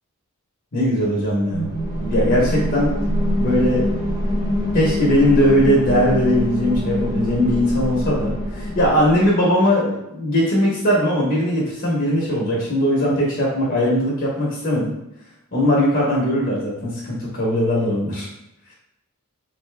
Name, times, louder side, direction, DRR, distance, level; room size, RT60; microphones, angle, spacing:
voice 1, 0.7-1.7 2.0-2.9 3.4-3.8 4.7-14.9 15.5-18.3, equal, 50° left, -5 dB, 0.8 m, -19 dB
sound 1, 1.5-9.3, equal, 20° right, 1.1 m, -24 dB
3.3 x 2.6 x 3.2 m, 0.86 s
head